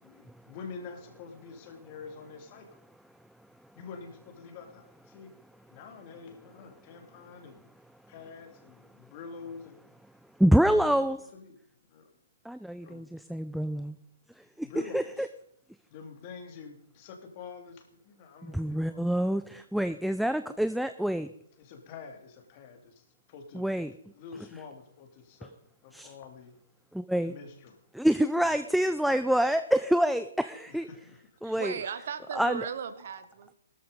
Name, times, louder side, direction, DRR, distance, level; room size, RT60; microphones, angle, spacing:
voice 1, 0.0-2.7 3.7-5.3 5.7-7.7 8.1-9.8 10.5-11.6 11.9-12.1 12.8-13.1 14.5-15.3 15.9-19.2 21.6-23.7 24.1-25.5 25.8-26.5 27.2-27.8 30.7-31.2 32.5-32.7, left 5 dB, 35° left, 5 dB, 3.0 m, -47 dB
voice 2, 10.4-11.2 12.5-14.0 14.6-14.7 14.9-15.0 18.4-21.3 23.5-23.9 25.9-26.1 26.9-27.3 27.9-30.9 31.4-31.7 32.4-32.6, equal, ahead, 10 dB, 0.6 m, -26 dB
voice 3, 31.4-33.5, right 7 dB, 55° right, 11 dB, 1.7 m, -37 dB
17.0 x 13.0 x 5.3 m, 0.69 s
figure-of-eight pair, 135°, 0 cm